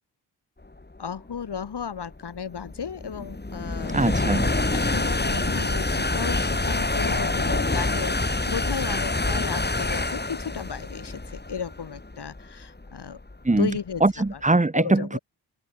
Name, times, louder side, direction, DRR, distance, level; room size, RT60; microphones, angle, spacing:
voice 1, 1.0-4.0 4.7-13.2 13.6-14.4 14.7-15.2, left 7 dB, 65° left, 7.3 m, -34 dB
sound 1, 1.0-14.3, left 2 dB, 25° left, 7.3 m, -27 dB
voice 2, 3.9-4.5 13.4-13.7 14.0-15.2, right 2 dB, 15° right, 1.7 m, -21 dB
open air
supercardioid pair, 50°, 43 cm